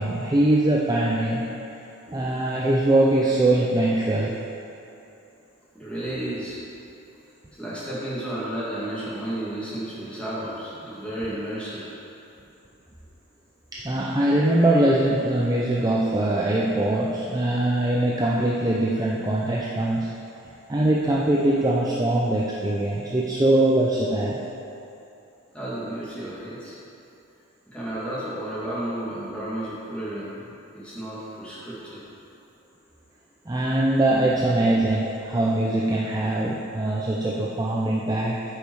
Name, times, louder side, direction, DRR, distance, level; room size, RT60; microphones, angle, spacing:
voice 1, 0.0-1.5 2.1-4.4 13.7-20.1 20.7-24.4 33.5-38.4, right 1 dB, 15° right, -4 dB, 0.5 m, -22 dB
voice 2, 5.7-6.6 7.6-12.0 25.5-26.7 27.7-32.0, right 1 dB, 5° left, -10 dB, 1.9 m, -32 dB
9.0 x 5.3 x 4.7 m, 2.8 s
head